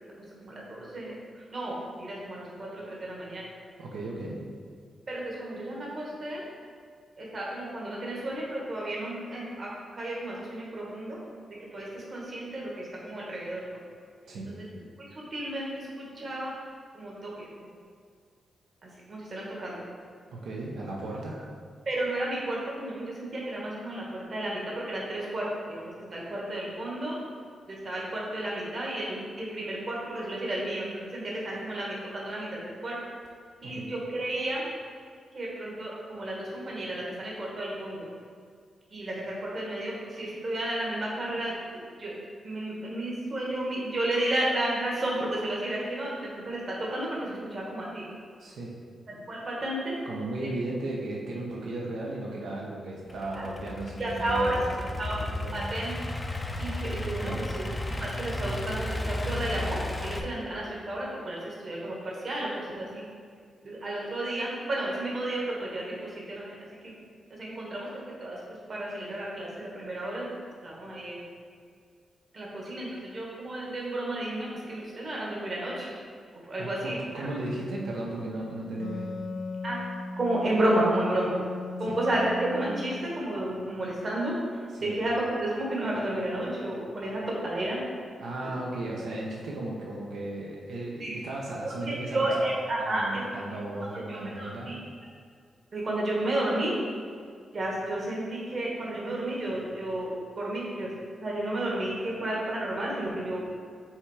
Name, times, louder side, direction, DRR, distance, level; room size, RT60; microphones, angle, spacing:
voice 1, 0.4-3.5 5.1-6.4 7.2-11.2 11.7-13.8 14.5-16.6 16.9-17.7 18.8-19.9 21.8-27.2 27.7-33.0 33.6-34.6 35.3-38.1 38.9-42.1 42.4-48.1 49.1-50.0 50.4-50.5 53.3-53.4 54.0-54.6 55.0-55.2 55.5-55.9 56.6-63.0 63.6-66.9 67.3-71.2 72.3-75.9 76.3-77.3 79.6-79.8 80.2-81.3 81.8-87.8 88.4-88.5 91.0-91.2 91.6-93.3 94.1-94.8 95.7-96.8 97.5-100.9 101.2-103.4, right 1 dB, 40° right, -4 dB, 1.4 m, -32 dB
voice 2, 3.8-4.4 14.3-14.5 20.3-21.4 33.6-33.9 48.4-48.8 50.1-55.6 57.2-57.5 76.6-79.2 81.9-82.0 84.7-84.9 88.2-92.3 92.8-94.7, right 2 dB, 85° right, -3 dB, 0.8 m, -35 dB
Idling / Accelerating revving vroom, 53.1-60.2, left 1 dB, 15° left, 0.4 m, -34 dB
Wind instrument woodwind instrument, 78.8-84.2, left 2 dB, 65° left, 0.5 m, -38 dB
5.7 x 3.6 x 4.8 m, 2.1 s
wide cardioid pair, 160°, 0 cm